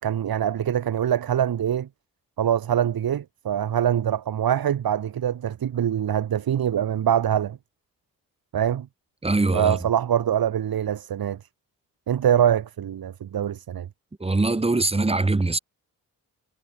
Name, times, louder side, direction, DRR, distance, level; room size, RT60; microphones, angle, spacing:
voice 1, 0.0-1.9 2.4-7.6 8.5-8.9 9.5-11.4 12.1-13.9, right 9 dB, 80° right, 4.6 m, -24 dB
voice 2, 9.2-9.8 14.2-15.6, right 2 dB, 15° right, 3.9 m, -22 dB
wide cardioid pair, 180°, 35 cm